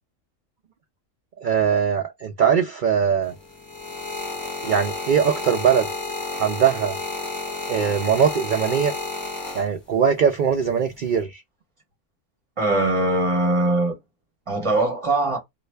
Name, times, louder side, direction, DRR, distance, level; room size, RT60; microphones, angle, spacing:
voice 1, 1.4-3.3 4.6-5.9 6.3-6.9 7.7-8.9 9.5-11.4, right 7 dB, 75° right, 0.4 m, -21 dB
sound 1, 3.2-10.1 10.9-11.2, left 2 dB, 20° left, 0.9 m, -31 dB
voice 2, 12.6-14.0 14.5-15.4, right 2 dB, 25° right, 1.5 m, -21 dB
3.2 x 2.5 x 3.2 m
omnidirectional pair, 1.4 m